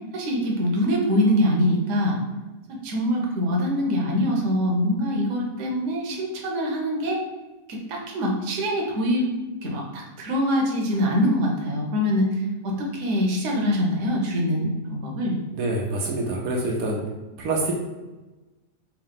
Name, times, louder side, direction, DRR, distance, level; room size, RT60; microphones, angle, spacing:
voice 1, 0.1-2.2 2.7-7.2 7.7-9.3 9.6-12.3 12.6-15.4, equal, 60° right, -1 dB, 1.1 m, -24 dB
voice 2, 15.5-17.0 17.4-17.7, right 2 dB, 80° right, -1 dB, 1.1 m, -26 dB
3.6 x 2.8 x 3.6 m, 1.1 s
omnidirectional pair, 1.5 m